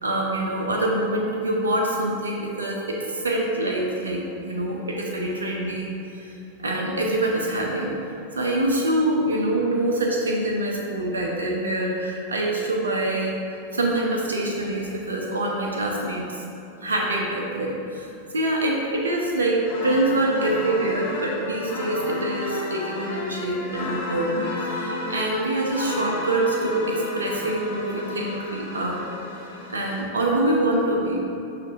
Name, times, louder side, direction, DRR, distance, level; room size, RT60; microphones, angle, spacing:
voice 1, 0.0-7.9 8.3-16.4 16.8-29.1 29.7-31.2, right 1 dB, 70° right, -1 dB, 0.4 m, -25 dB
sound 1, 19.6-30.1, left 2 dB, 55° left, 0.8 m, -32 dB
6.4 x 2.5 x 2.4 m, 2.9 s
figure-of-eight pair, 90°, 0 cm